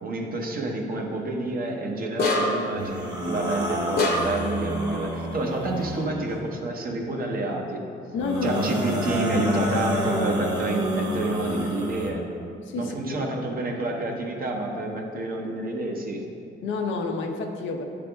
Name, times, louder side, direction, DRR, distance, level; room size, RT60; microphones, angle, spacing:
voice 1, 0.0-7.8 8.4-12.2 12.8-16.2, right 1 dB, 45° right, 1 dB, 0.9 m, -28 dB
sound 1, 2.2-2.8 4.0-4.5, left 2 dB, 50° left, 1.0 m, -24 dB
sound 2, 2.7-6.2 8.2-12.1, right 1 dB, 20° right, 1.1 m, -29 dB
voice 2, 8.1-8.9 12.6-13.2 16.6-17.8, left 4 dB, 75° left, 3 dB, 0.7 m, -29 dB
9.5 x 3.4 x 3.5 m, 2.5 s
cardioid pair, 90°, 20 cm